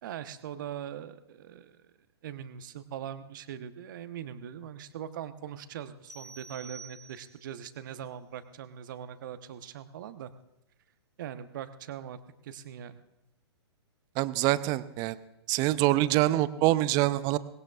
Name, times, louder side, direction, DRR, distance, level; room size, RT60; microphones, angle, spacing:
voice 1, 0.0-1.8 2.2-10.3 11.2-12.2 12.4-13.0, right 9 dB, 45° right, 11 dB, 1.1 m, -41 dB
sound 1, 6.1-7.6, right 4 dB, ahead, 1.4 m, -49 dB
voice 2, 14.2-15.2 15.5-17.4, right 16 dB, 30° right, 16 dB, 0.7 m, -25 dB
23.5 x 20.5 x 2.4 m, 0.88 s
figure-of-eight pair, 115°, 14 cm